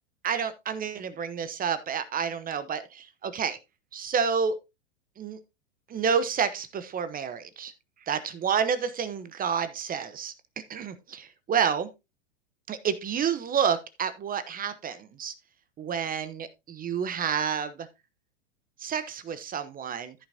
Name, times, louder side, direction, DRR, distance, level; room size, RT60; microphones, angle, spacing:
voice 1, 0.2-3.6 3.9-4.6 5.2-5.4 5.9-7.7 8.1-10.3 10.7-11.9 12.7-15.3 15.8-17.9 18.8-20.1, right 7 dB, 25° right, 12 dB, 0.9 m, -29 dB
14.5 x 5.9 x 2.7 m, 0.24 s
hypercardioid pair, 110°, 37 cm